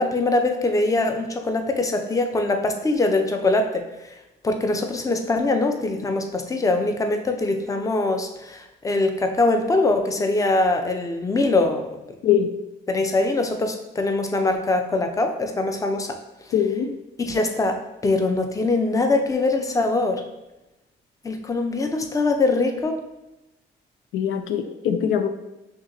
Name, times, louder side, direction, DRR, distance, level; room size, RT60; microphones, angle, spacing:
voice 1, 0.0-4.1 4.4-12.0 12.9-16.2 17.2-20.2 21.2-23.0, left 2 dB, 15° left, 5 dB, 0.5 m, -23 dB
voice 2, 12.2-12.5 16.5-16.9 24.1-25.3, left 8 dB, 85° left, 8 dB, 0.4 m, -22 dB
6.0 x 2.8 x 2.7 m, 0.96 s
cardioid pair, 90°, 20 cm